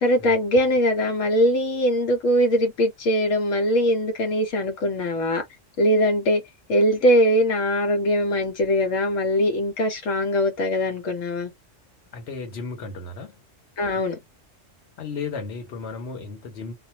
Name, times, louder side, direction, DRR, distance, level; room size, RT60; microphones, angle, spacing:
voice 1, 0.0-5.4 5.8-6.4 6.7-11.5 13.8-14.2, equal, 85° left, 1.2 m, -21 dB
voice 2, 12.1-13.4 15.0-16.7, left 4 dB, 60° left, 1.2 m, -34 dB
2.5 x 2.2 x 2.8 m
omnidirectional pair, 1.3 m